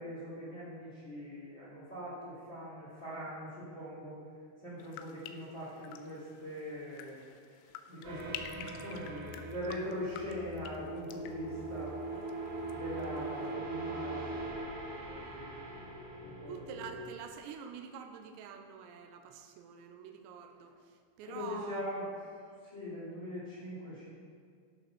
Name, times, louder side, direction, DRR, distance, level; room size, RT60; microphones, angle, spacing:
voice 1, 0.0-4.2 4.6-7.2 7.9-12.2 12.6-15.7 16.1-16.9 21.2-22.0 22.6-24.1, left 1 dB, 30° left, -9 dB, 2.7 m, -42 dB
sound 1, 4.8-12.7 13.0-13.5, left 9 dB, 85° left, 3.2 m, -50 dB
sound 2, 8.0-17.1, right 2 dB, 55° right, 4.1 m, -41 dB
voice 2, 16.5-21.8, right 7 dB, 80° right, 5 dB, 2.7 m, -47 dB
11.5 x 6.8 x 6.0 m, 2.2 s
omnidirectional pair, 5.9 m